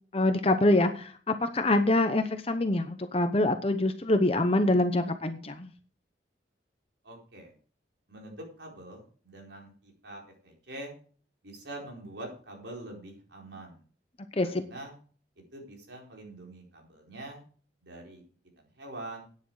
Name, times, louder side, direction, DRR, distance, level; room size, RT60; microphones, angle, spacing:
voice 1, 0.1-5.7 14.4-14.6, left 2 dB, 30° left, 8 dB, 0.8 m, -25 dB
voice 2, 7.0-7.5 8.1-10.9 11.4-13.8 14.3-15.0 15.5-17.4 17.8-18.2 18.6-19.3, right 1 dB, 75° right, 0 dB, 4.5 m, -44 dB
11.5 x 9.6 x 4.8 m, 0.42 s
head